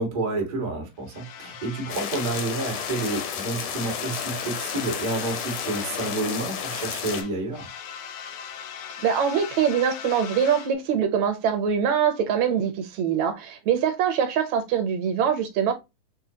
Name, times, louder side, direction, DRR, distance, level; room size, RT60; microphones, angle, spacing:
voice 1, 0.0-7.7, right 2 dB, 90° right, 0.4 m, -29 dB
sound 1, 1.1-3.4 3.7-6.3 6.5-10.7, left 8 dB, 85° left, 2.2 m, -40 dB
sound 2, 1.9-7.2, left 8 dB, 70° left, 1.5 m, -32 dB
voice 2, 9.0-15.7, right 7 dB, 70° right, 1.8 m, -23 dB
6.0 x 2.3 x 2.7 m
omnidirectional pair, 3.6 m